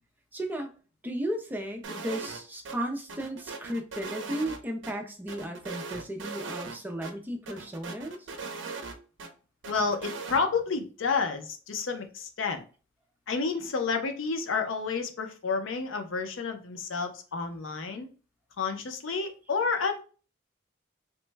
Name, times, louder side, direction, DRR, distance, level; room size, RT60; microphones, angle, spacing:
voice 1, 0.3-0.7 1.0-8.3, right 1 dB, 10° right, 3 dB, 0.4 m, -35 dB
sound 1, 1.8-2.4 2.6-2.8 3.1-4.9 5.3-6.8 7.0-7.1 7.5-9.3 9.6-10.4, right 4 dB, 65° right, 0.5 m, -39 dB
voice 2, 9.7-12.6 13.3-18.1 18.6-20.0, left 4 dB, 80° left, 7 dB, 0.5 m, -30 dB
3.1 x 2.1 x 3.2 m, 0.37 s
head